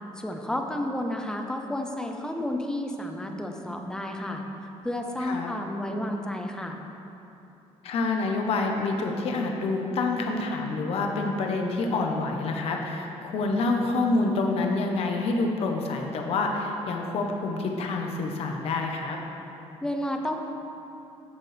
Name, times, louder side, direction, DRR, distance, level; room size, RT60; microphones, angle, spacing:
voice 1, 0.2-4.4 4.8-6.8 19.8-20.3, left 1 dB, 5° left, 3 dB, 0.7 m, -31 dB
voice 2, 5.2-5.5 7.8-19.2, left 3 dB, 60° left, 2 dB, 1.1 m, -27 dB
14.0 x 7.4 x 3.4 m, 2.9 s
cardioid pair, 165°, 11 cm